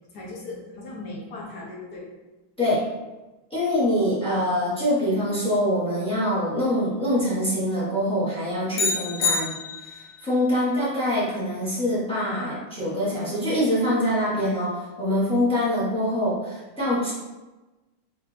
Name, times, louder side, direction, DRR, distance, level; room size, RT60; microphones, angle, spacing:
voice 1, 0.1-2.1 3.7-3.8, left 2 dB, 60° left, -3 dB, 1.2 m, -38 dB
voice 2, 3.5-17.1, equal, 5° left, -8 dB, 0.7 m, -24 dB
sound 1, 8.7-10.2, left 4 dB, 80° left, 1.6 m, -26 dB
4.4 x 2.6 x 3.3 m, 1.1 s
omnidirectional pair, 2.4 m